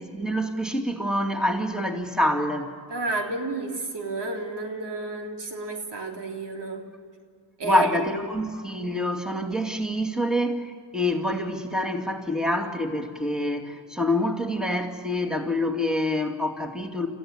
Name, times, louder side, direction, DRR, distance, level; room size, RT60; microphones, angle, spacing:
voice 1, 0.0-2.7 7.6-17.1, left 1 dB, ahead, 2 dB, 2.5 m, -26 dB
voice 2, 2.9-6.9 7.6-8.4, right 2 dB, 65° right, 3 dB, 3.5 m, -31 dB
26.0 x 15.0 x 9.9 m, 2.2 s
cardioid pair, 85°, 45 cm